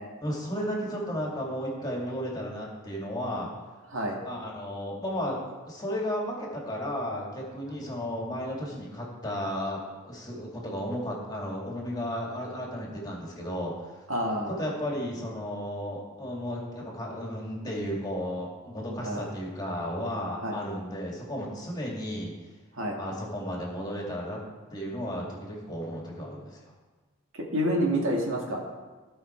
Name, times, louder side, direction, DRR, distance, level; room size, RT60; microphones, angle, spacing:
voice 1, 0.2-3.5 4.2-5.4 5.7-13.9 14.6-22.3 23.0-24.4 24.7-26.6, equal, 20° left, -2 dB, 2.3 m, -34 dB
voice 2, 14.1-14.6 19.0-19.3 20.4-20.6 22.7-23.0 27.3-28.6, equal, 70° right, -1 dB, 2.0 m, -28 dB
16.5 x 5.7 x 4.5 m, 1.3 s
head